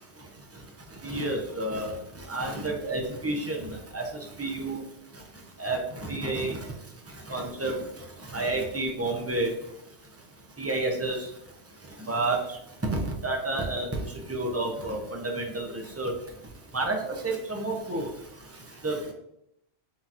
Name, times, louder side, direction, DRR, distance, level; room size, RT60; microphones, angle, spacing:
voice 1, 1.0-1.9 2.3-3.6 3.9-4.0 4.4-4.8 5.6-6.6 7.3-7.7 8.3-9.5 10.6-11.2 12.1-12.4 13.2-14.0 14.3-15.7 16.0-16.1 16.7-17.0 17.2-18.1 18.8-19.1, right 2 dB, 20° right, 1 dB, 0.4 m, -29 dB
5.5 x 2.8 x 2.4 m, 0.77 s
omnidirectional pair, 1.1 m